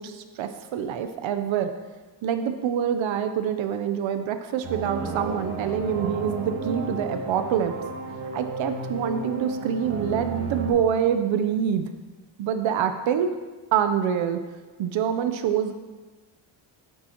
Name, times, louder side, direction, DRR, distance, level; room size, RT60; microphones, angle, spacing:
voice 1, 0.0-1.7 2.2-7.7 8.3-11.8 12.4-13.3 13.7-14.4 14.8-15.7, right 8 dB, 75° right, 8 dB, 0.7 m, -26 dB
sound 1, 4.6-10.7, right 3 dB, 90° right, 1.9 m, -33 dB
11.0 x 8.9 x 2.9 m, 1.3 s
wide cardioid pair, 160°, 47 cm